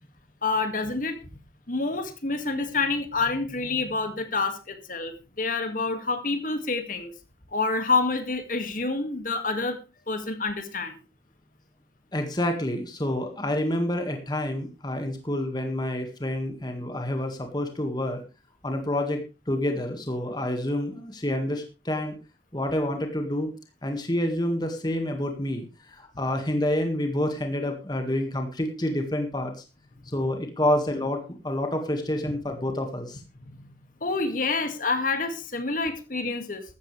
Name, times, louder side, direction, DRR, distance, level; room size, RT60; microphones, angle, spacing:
voice 1, 0.4-1.2 1.7-7.1 7.5-9.8 10.1-11.0 34.0-36.6, left 3 dB, 50° left, 8 dB, 2.1 m, -27 dB
voice 2, 12.1-18.2 18.6-19.2 19.5-22.2 22.5-23.5 23.8-29.6 30.1-33.2, left 1 dB, 25° left, 5 dB, 1.8 m, -28 dB
15.0 x 13.0 x 3.3 m, 0.30 s
head